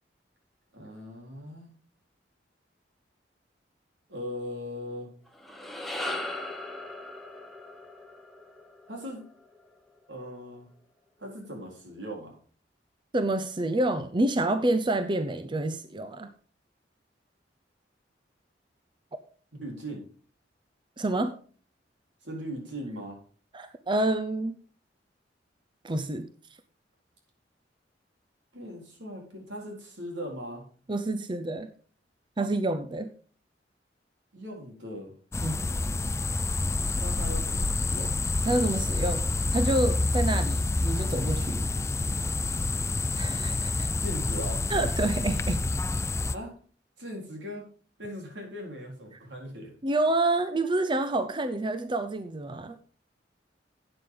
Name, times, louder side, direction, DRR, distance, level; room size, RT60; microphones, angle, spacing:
voice 1, 0.7-1.7 4.1-5.1 8.9-9.2 10.1-10.7 11.2-12.3 19.6-20.0 22.2-23.2 28.5-30.6 34.3-35.1 37.0-38.1 44.0-44.6 46.3-46.5 47.0-47.6 48.0-49.7, equal, 80° right, 0 dB, 4.2 m, -39 dB
sound 1, 5.3-9.7, left 1 dB, ahead, 1.3 m, -38 dB
voice 2, 13.1-16.3 21.0-21.3 23.5-24.6 25.8-26.3 30.9-31.7 32.4-33.1 35.4-35.7 38.4-41.6 43.1-43.9 44.7-45.7 49.8-52.8, right 2 dB, 25° right, 10 dB, 0.6 m, -28 dB
sound 2, 35.3-46.3, left 2 dB, 15° left, 0.4 m, -28 dB
12.0 x 8.7 x 3.9 m, 0.41 s
head